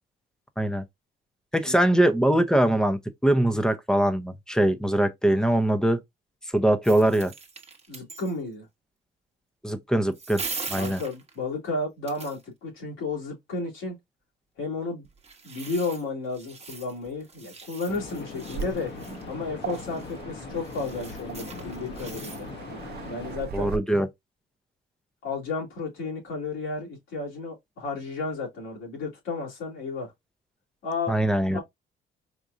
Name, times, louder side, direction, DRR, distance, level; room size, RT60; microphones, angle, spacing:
voice 1, 1.5-6.0 6.5-7.3 9.6-10.4 10.7-11.0 23.5-24.1 31.1-31.6, right 1 dB, 5° left, 0.7 m, -22 dB
sound 1, 6.8-8.4 10.1-11.4 12.1-12.4 15.0-22.5, right 4 dB, 30° right, 1.0 m, -41 dB
voice 2, 7.9-8.7 10.7-14.0 14.6-15.1 15.4-18.9 19.3-22.5 23.1-23.7 25.2-30.1 30.8-31.1 31.5-31.6, left 3 dB, 90° left, 2.7 m, -32 dB
sound 2, 17.9-23.4, left 4 dB, 60° left, 1.2 m, -40 dB
Waves surf, 18.5-23.8, right 7 dB, 55° right, 0.5 m, -40 dB
4.8 x 2.6 x 2.5 m
cardioid pair, 90°, 20 cm